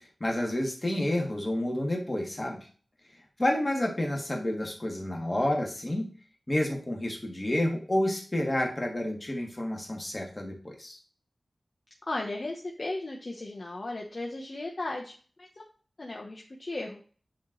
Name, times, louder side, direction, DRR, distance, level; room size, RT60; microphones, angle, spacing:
voice 1, 0.0-2.6 3.4-6.1 6.5-11.0, left 1 dB, 30° left, 1 dB, 1.8 m, -29 dB
voice 2, 12.1-15.1 15.4-15.6 16.0-17.0, left 2 dB, 50° left, -1 dB, 0.9 m, -36 dB
8.6 x 3.2 x 3.8 m, 0.40 s
wide cardioid pair, 70°, 0 cm